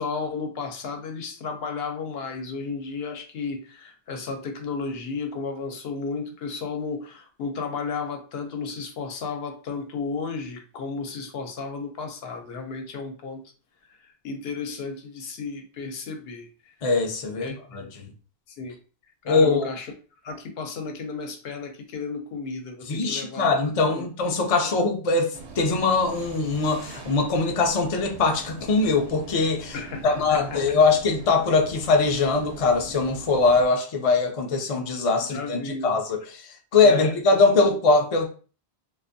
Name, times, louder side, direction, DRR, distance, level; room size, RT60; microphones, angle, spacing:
voice 1, 0.0-13.4 13.9-14.0 14.2-16.5 17.4-17.9 18.6-18.8 19.3-19.9 20.2-23.6 23.9-24.1 29.7-30.6 35.3-36.0 36.8-37.2, left 4 dB, 70° left, 0.8 m, -33 dB
voice 2, 16.8-18.1 19.2-19.7 22.9-29.8 30.0-38.3, left 3 dB, 50° left, 0.4 m, -22 dB
sound 1, 25.3-33.7, right 4 dB, 90° right, 0.9 m, -42 dB
2.4 x 2.2 x 2.5 m
omnidirectional pair, 1.1 m